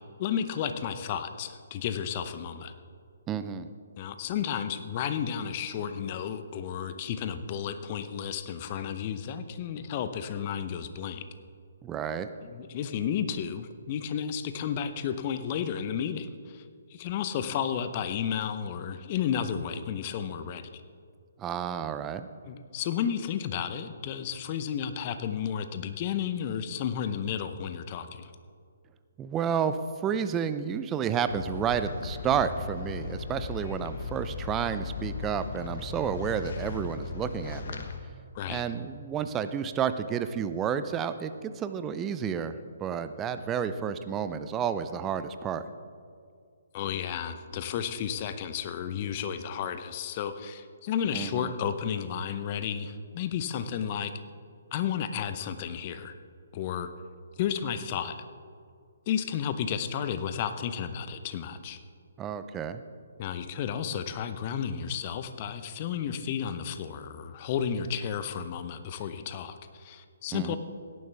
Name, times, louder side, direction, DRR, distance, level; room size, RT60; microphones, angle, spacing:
voice 1, 0.2-2.7 4.0-11.2 12.4-16.6 16.9-20.7 22.5-28.3 38.3-38.6 46.7-54.1 54.7-56.1 56.5-56.9 57.4-58.2 59.1-61.8 63.2-70.6, left 8 dB, 35° left, 10 dB, 0.8 m, -32 dB
voice 2, 3.3-3.7 11.8-12.3 21.4-22.3 29.2-29.8 30.0-37.8 38.5-42.5 42.8-45.6 51.1-51.5 62.2-62.8 70.3-70.6, right 8 dB, 15° right, 11 dB, 0.5 m, -31 dB
sound 1, 31.3-38.0, left 5 dB, 55° left, 1.2 m, -37 dB
17.0 x 10.5 x 3.5 m, 2.2 s
figure-of-eight pair, 135°, 0 cm